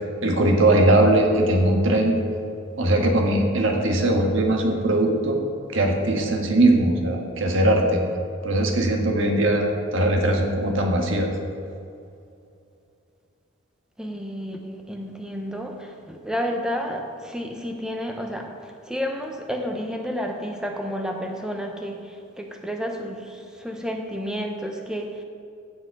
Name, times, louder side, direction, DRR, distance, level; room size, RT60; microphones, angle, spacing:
voice 1, 0.2-2.1 2.8-5.4 5.7-8.0 8.4-11.3, right 1 dB, 75° right, 2 dB, 1.5 m, -20 dB
voice 2, 14.0-25.2, equal, 5° right, 2 dB, 0.8 m, -31 dB
15.5 x 5.4 x 4.7 m, 2.5 s
head